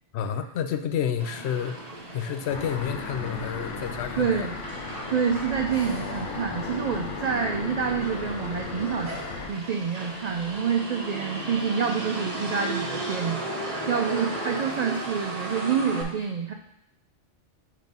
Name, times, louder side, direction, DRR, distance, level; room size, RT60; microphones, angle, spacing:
voice 1, 0.1-1.8 2.1-4.5, left 8 dB, 70° left, 9 dB, 0.8 m, -29 dB
Motor vehicle (road), 1.2-16.0, right 1 dB, 35° right, 1.0 m, -36 dB
sound 1, 2.5-9.5, left 4 dB, 85° left, 1.1 m, -35 dB
voice 2, 4.2-4.5 5.1-9.1 9.5-13.4 13.9-16.5, right 6 dB, 65° right, 3 dB, 0.4 m, -27 dB
7.5 x 3.1 x 5.2 m, 0.84 s
omnidirectional pair, 1.2 m